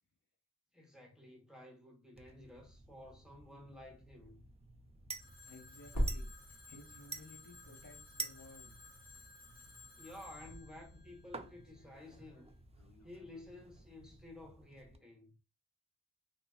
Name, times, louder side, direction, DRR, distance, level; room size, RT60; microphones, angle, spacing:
voice 1, 0.7-4.5 10.0-12.5 13.0-15.4, left 1 dB, ahead, 0.9 m, -53 dB
sound 1, 2.2-15.0, right 3 dB, 20° right, 0.4 m, -51 dB
Telephone, 5.2-12.0, left 4 dB, 25° left, 1.6 m, -58 dB
voice 2, 5.4-6.3 6.7-8.8, left 2 dB, 85° left, 1.1 m, -57 dB
sound 2, 5.9-7.5 8.0-8.1 10.0-13.6 14.3-14.4, equal, 55° left, 1.1 m, -42 dB
2.9 x 2.7 x 2.2 m
wide cardioid pair, 55°, 33 cm